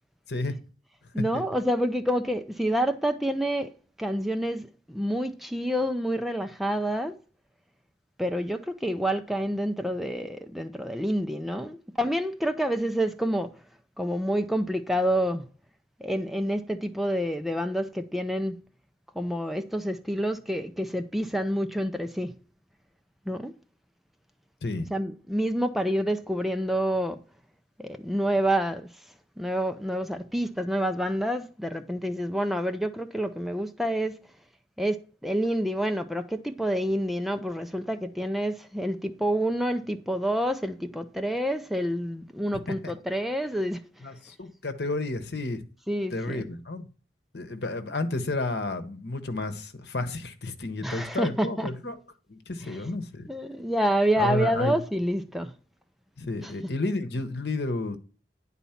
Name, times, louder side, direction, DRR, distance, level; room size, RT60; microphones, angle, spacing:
voice 1, 1.1-3.7 4.0-7.1 8.2-13.5 14.0-15.4 16.0-18.6 19.2-22.3 23.3-23.5 24.9-27.2 27.8-28.9 29.4-34.2 34.8-43.8 45.9-46.4 50.8-51.7 52.7-52.8 53.3-55.5 56.4-56.5, equal, ahead, 0.5 m, -28 dB
voice 2, 44.0-45.6 46.1-46.9 47.3-52.0 52.3-53.3 54.2-54.7 56.2-58.0, left 2 dB, 70° left, 1.1 m, -31 dB
10.0 x 4.1 x 5.7 m
head